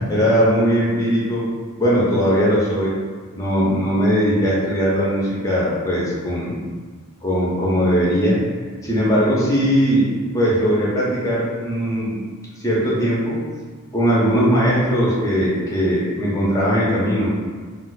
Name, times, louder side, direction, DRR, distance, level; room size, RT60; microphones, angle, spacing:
voice 1, 0.1-1.5 1.8-3.0 3.3-6.6 7.2-8.4 8.8-12.1 12.6-13.4 13.9-17.4, equal, 15° left, -6 dB, 0.6 m, -19 dB
2.4 x 2.3 x 3.9 m, 1.5 s
head